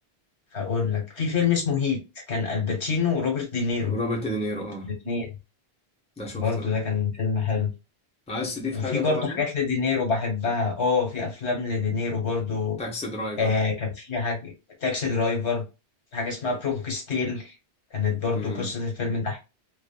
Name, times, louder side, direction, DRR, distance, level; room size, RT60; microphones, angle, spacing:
voice 1, 0.5-2.0 2.3-4.0 4.8-5.3 6.3-7.7 8.7-12.8 13.4-14.5 14.8-15.6 16.1-17.5 17.9-19.4, left 5 dB, 85° left, 1.5 m, -26 dB
voice 2, 3.8-4.9 6.2-6.7 8.3-9.4 12.8-13.5 18.3-18.7, left 1 dB, 5° left, 0.7 m, -31 dB
2.5 x 2.5 x 2.3 m
omnidirectional pair, 1.1 m